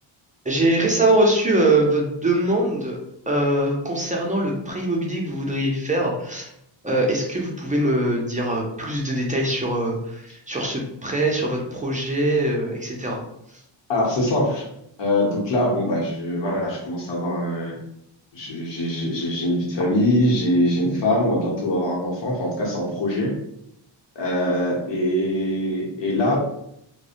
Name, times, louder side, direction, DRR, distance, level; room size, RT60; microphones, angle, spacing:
voice 1, 0.5-3.0 3.3-6.5 6.8-13.2, right 1 dB, 20° right, -2 dB, 0.4 m, -22 dB
voice 2, 13.9-14.6 15.0-17.8 18.3-23.3 24.2-26.4, left 1 dB, 65° left, -2 dB, 0.9 m, -23 dB
2.6 x 2.1 x 2.4 m, 0.77 s
wide cardioid pair, 110°, 46 cm